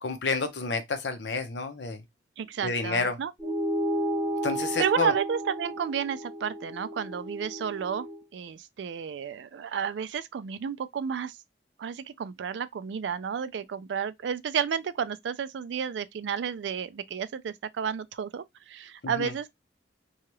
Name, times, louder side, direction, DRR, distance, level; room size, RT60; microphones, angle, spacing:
voice 1, 0.0-2.0 2.6-3.2 4.4-5.1 19.0-19.3, left 4 dB, 75° left, 0.7 m, -29 dB
voice 2, 2.4-3.5 4.8-8.1 8.3-11.4 11.8-19.5, right 7 dB, 85° right, 0.3 m, -31 dB
sound 1, 3.4-8.2, right 1 dB, 5° right, 0.9 m, -32 dB
2.8 x 2.3 x 3.0 m
head